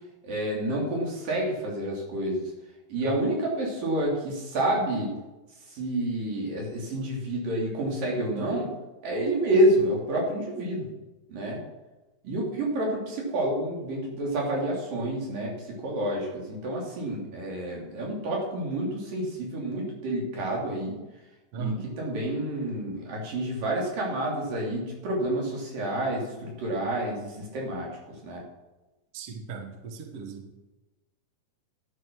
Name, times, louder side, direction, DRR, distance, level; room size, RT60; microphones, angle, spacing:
voice 1, 0.2-2.5 2.9-5.1 5.7-8.7 9.0-10.9 11.3-11.6 12.2-21.0 21.5-28.4, right 1 dB, 55° right, -2 dB, 4.6 m, -29 dB
voice 2, 21.5-21.9 29.1-30.5, right 6 dB, 80° right, 4 dB, 1.3 m, -36 dB
12.0 x 9.5 x 6.1 m, 1.1 s
omnidirectional pair, 5.0 m